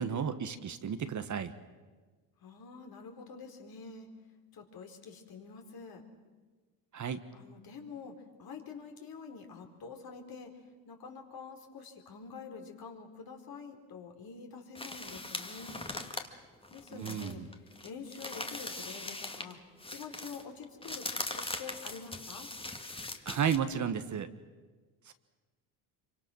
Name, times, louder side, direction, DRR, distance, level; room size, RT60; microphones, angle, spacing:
voice 1, 0.0-1.5 6.9-7.2 16.9-17.5 23.2-24.3 25.1-25.2, right 7 dB, 40° right, 10 dB, 1.5 m, -33 dB
voice 2, 2.4-4.1 4.5-6.0 7.3-10.5 10.8-16.0 16.7-17.4 17.8-19.6 19.9-22.5, left 5 dB, 50° left, 3 dB, 4.1 m, -47 dB
sound 1, 14.8-19.5 19.8-23.6, left 2 dB, 10° left, 2.1 m, -40 dB
26.0 x 24.5 x 6.3 m, 1.3 s
supercardioid pair, 75°, 44 cm